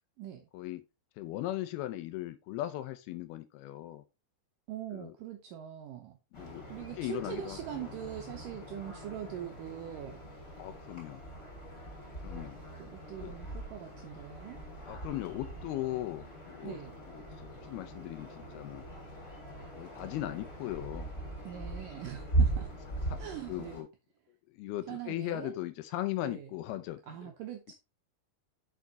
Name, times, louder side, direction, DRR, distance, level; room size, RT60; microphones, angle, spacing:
voice 1, 0.2-0.5 4.7-6.2 6.7-10.2 12.8-14.6 16.6-16.9 21.4-22.7 23.2-23.9 24.9-25.6 26.2-26.5 27.1-27.7, right 10 dB, 80° right, 2.0 m, -42 dB
voice 2, 1.2-4.0 4.9-5.1 6.3-6.7 7.0-7.9 10.6-11.2 12.2-12.6 13.2-13.4 14.8-16.8 17.1-18.8 19.8-21.1 23.1-23.2 23.5-23.9 24.6-27.3, left 15 dB, 80° left, 2.5 m, -38 dB
sound 1, 6.3-23.8, right 2 dB, 20° left, 3.1 m, -39 dB
7.0 x 6.0 x 4.0 m
omnidirectional pair, 4.8 m